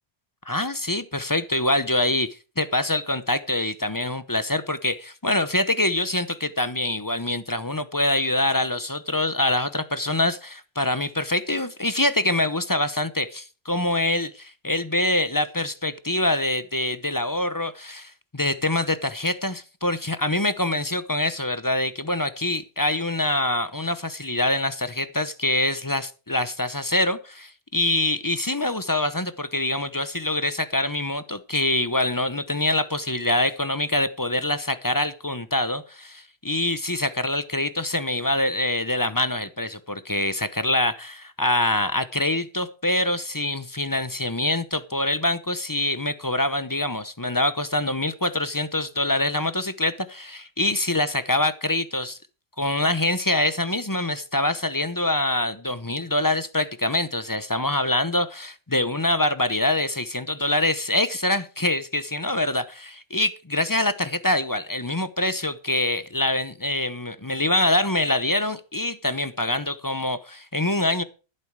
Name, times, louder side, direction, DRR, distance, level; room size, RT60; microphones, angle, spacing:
voice 1, 0.5-52.2 52.6-71.0, left 1 dB, 20° left, 0.8 m, -25 dB
12.0 x 11.0 x 4.8 m
omnidirectional pair, 1.1 m